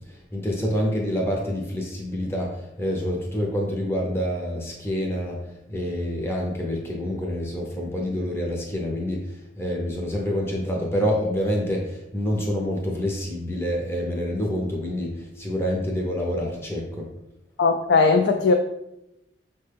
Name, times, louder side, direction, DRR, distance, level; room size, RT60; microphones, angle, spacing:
voice 1, 0.0-17.1, equal, 15° left, -1 dB, 0.5 m, -27 dB
voice 2, 17.6-18.5, left 4 dB, 70° left, 4 dB, 0.3 m, -18 dB
5.8 x 2.2 x 3.3 m, 0.87 s
head